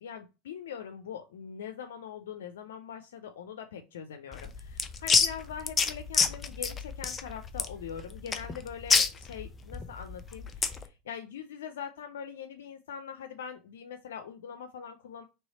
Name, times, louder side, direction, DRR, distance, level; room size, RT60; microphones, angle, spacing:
voice 1, 0.0-15.3, left 7 dB, 85° left, 7 dB, 0.4 m, -42 dB
sound 1, 4.3-10.8, left 5 dB, 25° left, 0.6 m, -28 dB
3.1 x 3.1 x 4.0 m, 0.29 s
hypercardioid pair, 95°, 0 cm